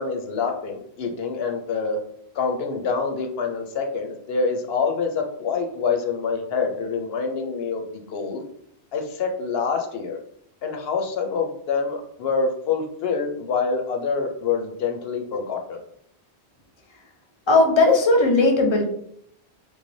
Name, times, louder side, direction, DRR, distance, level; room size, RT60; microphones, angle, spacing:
voice 1, 0.0-2.0 2.3-8.4 8.9-10.2 10.6-15.8, left 5 dB, 70° left, 4 dB, 0.7 m, -26 dB
voice 2, 17.5-18.8, left 3 dB, 30° left, 1 dB, 0.6 m, -17 dB
3.5 x 3.2 x 2.6 m, 0.69 s
omnidirectional pair, 1.1 m